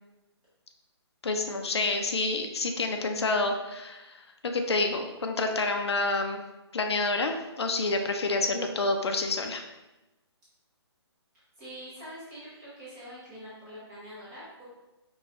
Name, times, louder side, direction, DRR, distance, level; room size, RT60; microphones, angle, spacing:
voice 1, 1.2-6.4 6.7-9.6, left 3 dB, 70° left, 5 dB, 0.6 m, -28 dB
voice 2, 11.6-14.6, equal, 5° right, -10 dB, 0.6 m, -44 dB
4.6 x 3.1 x 2.8 m, 1.0 s
hypercardioid pair, 180°, 14 cm